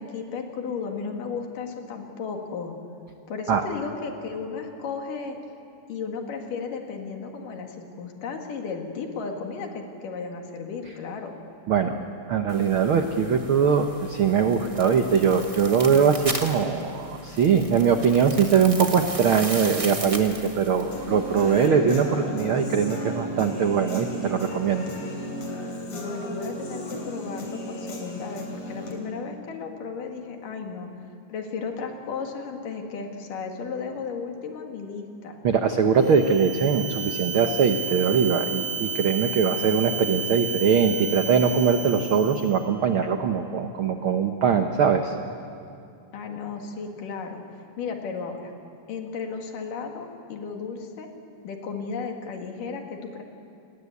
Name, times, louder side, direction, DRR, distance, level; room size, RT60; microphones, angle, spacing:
voice 1, 0.0-2.7 3.3-5.4 5.9-11.3 25.9-30.9 31.3-35.4 46.1-47.4 47.8-48.5 48.9-51.1 51.4-53.2, left 5 dB, 75° left, 3 dB, 3.6 m, -34 dB
voice 2, 11.7-12.0 12.3-24.9 35.4-45.1, right 6 dB, 75° right, 6 dB, 1.2 m, -22 dB
sound 1, 12.5-21.7, right 2 dB, 55° right, 0.3 m, -37 dB
Human voice / Guitar, 20.9-28.9, equal, 50° left, 4.7 m, -34 dB
sound 2, 36.0-42.6, right 5 dB, 20° right, 2.2 m, -32 dB
29.0 x 21.0 x 8.4 m, 2.5 s
omnidirectional pair, 3.9 m